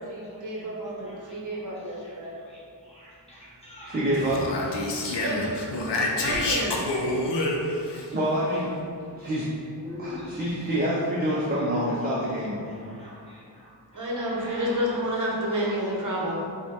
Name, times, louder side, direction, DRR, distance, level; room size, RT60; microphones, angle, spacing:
voice 1, 0.1-2.3 5.2-5.4 6.2-6.7 13.9-16.4, equal, 45° right, -4 dB, 0.7 m, -30 dB
voice 2, 1.0-4.3 4.6-6.5 6.8-7.4 7.9-8.0 8.5-8.6 9.8-10.4 11.4-11.6 12.2-12.3 12.6-15.0 16.2-16.3, left 1 dB, 15° left, -8 dB, 0.8 m, -45 dB
voice 3, 3.9-4.5 8.1-8.8 9.2-9.5 10.0-12.6, equal, 25° right, -6 dB, 0.4 m, -27 dB
Speech, 4.1-8.0, left 2 dB, 75° left, 0.6 m, -28 dB
5.1 x 2.1 x 2.8 m, 2.4 s
wide cardioid pair, 135°, 43 cm